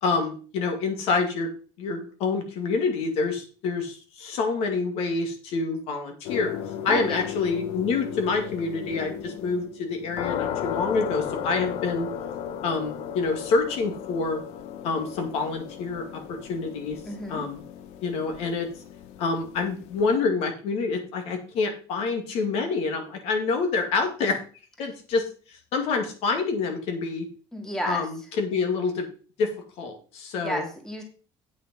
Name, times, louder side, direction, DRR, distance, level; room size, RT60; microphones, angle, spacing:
voice 1, 0.0-1.5 1.8-6.5 6.8-12.1 12.6-14.4 14.8-17.0 17.3-17.6 18.0-18.7 19.2-24.4 24.8-25.2 25.7-27.3 27.9-29.1 29.4-29.5 29.8-30.7, left 4 dB, 70° left, 4 dB, 2.3 m, -27 dB
sound 1, 6.2-20.2, left 9 dB, 90° left, 0.9 m, -35 dB
voice 2, 6.9-7.2 17.1-17.4 27.5-28.0 30.3-31.0, equal, 5° left, 1 dB, 2.3 m, -32 dB
8.7 x 6.9 x 5.2 m, 0.39 s
cardioid pair, 145°, 11 cm